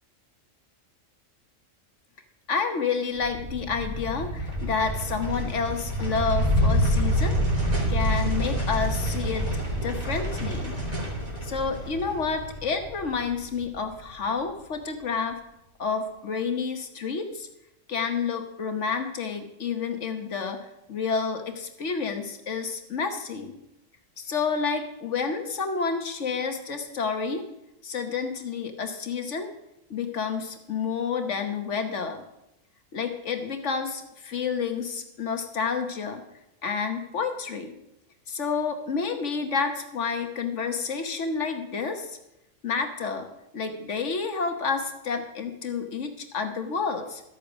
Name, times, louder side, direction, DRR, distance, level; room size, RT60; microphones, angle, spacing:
voice 1, 2.5-7.4 7.9-9.5 9.8-10.8 11.4-15.4 15.8-17.5 17.9-23.5 24.2-27.5 27.8-29.5 29.9-32.2 32.9-36.2 36.6-37.7 38.3-42.2 42.6-43.3 43.5-47.2, left 5 dB, 65° left, 6 dB, 1.4 m, -29 dB
sound 1, 3.2-13.8, equal, 30° right, 3.2 m, -27 dB
13.0 x 8.4 x 6.1 m, 0.86 s
omnidirectional pair, 1.3 m